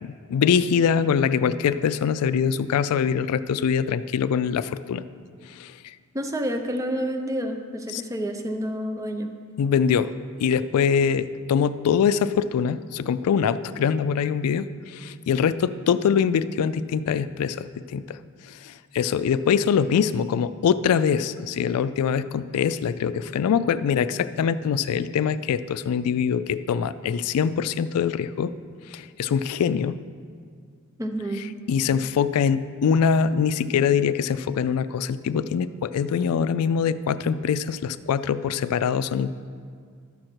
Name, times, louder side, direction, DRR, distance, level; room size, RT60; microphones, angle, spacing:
voice 1, 0.0-5.0 5.6-5.7 7.9-8.0 9.6-10.1 10.4-18.2 18.5-28.5 28.9-30.0 31.7-39.3, left 7 dB, 85° left, 14 dB, 0.3 m, -23 dB
voice 2, 6.1-9.3 31.0-31.5, equal, 15° right, 4 dB, 0.6 m, -29 dB
12.0 x 6.4 x 4.5 m, 2.1 s
head